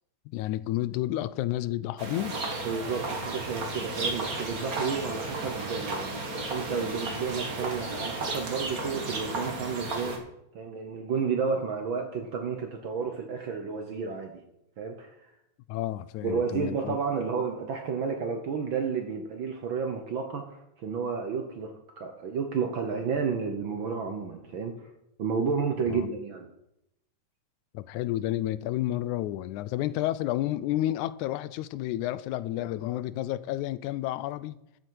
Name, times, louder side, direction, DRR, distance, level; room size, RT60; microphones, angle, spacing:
voice 1, 0.3-2.4 15.7-17.0 25.9-26.1 27.7-34.6, left 14 dB, 85° left, 2.0 m, -31 dB
sound 1, 2.0-10.2, right 2 dB, 35° right, 1.8 m, -33 dB
voice 2, 2.6-10.2 10.5-14.4 14.8-15.3 16.2-24.9 25.2-26.5, right 5 dB, 65° right, 1.2 m, -31 dB
13.5 x 8.1 x 4.7 m
omnidirectional pair, 3.4 m